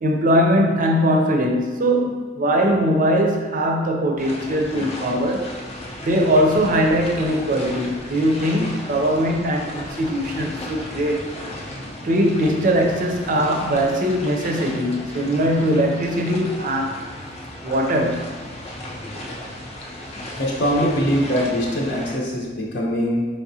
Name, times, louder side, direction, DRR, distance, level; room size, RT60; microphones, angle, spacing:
voice 1, 0.0-5.5 6.0-11.3 12.0-17.0 17.6-18.4, equal, 45° right, 2 dB, 0.5 m, -20 dB
sound 1, 4.2-22.2, left 1 dB, 35° left, 0.5 m, -35 dB
voice 2, 20.3-23.3, equal, 65° left, -2 dB, 0.8 m, -22 dB
4.8 x 3.3 x 2.7 m, 1.3 s
head